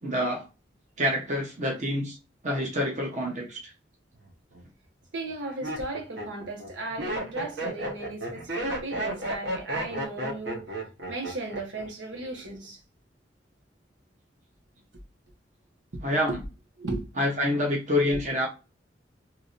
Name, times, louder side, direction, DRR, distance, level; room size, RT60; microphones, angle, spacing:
voice 1, 0.0-0.4 1.0-2.2 2.4-3.7 16.0-16.4 17.2-18.5, left 1 dB, 40° right, 0.9 m, -27 dB
Laughter, 4.2-4.6 5.2-11.9 12.1-12.6, right 1 dB, 65° right, 1.3 m, -33 dB
voice 2, 5.1-10.7 11.1-12.8 16.3-16.4 16.8-17.1, right 2 dB, 85° right, 1.3 m, -36 dB
3.6 x 3.0 x 2.6 m
head